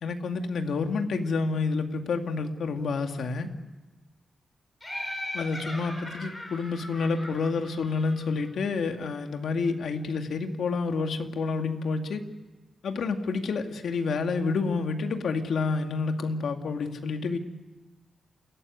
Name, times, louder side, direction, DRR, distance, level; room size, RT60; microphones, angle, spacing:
voice 1, 0.0-3.5 5.3-12.2 12.8-17.4, left 4 dB, 75° left, 5 dB, 2.2 m, -29 dB
Laughter, 4.8-8.4, left 1 dB, 15° left, 7.0 m, -39 dB
28.0 x 17.5 x 9.7 m, 1.2 s
wide cardioid pair, 175°, 0 cm